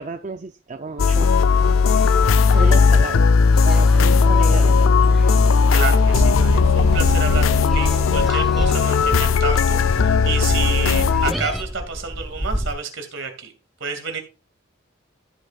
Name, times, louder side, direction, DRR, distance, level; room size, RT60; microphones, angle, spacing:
voice 1, 0.0-1.7 2.5-3.2 3.6-5.5, right 4 dB, 35° right, 7 dB, 0.5 m, -32 dB
sound 1, 1.0-11.3, left 5 dB, 90° left, 0.4 m, -16 dB
sound 2, 1.6-11.6, equal, ahead, 1.0 m, -36 dB
voice 2, 5.7-13.5 13.8-14.2, right 5 dB, 70° right, 6 dB, 2.3 m, -29 dB
sound 3, 6.0-12.7, equal, 20° right, 2.6 m, -26 dB
16.0 x 6.1 x 2.4 m, 0.30 s
head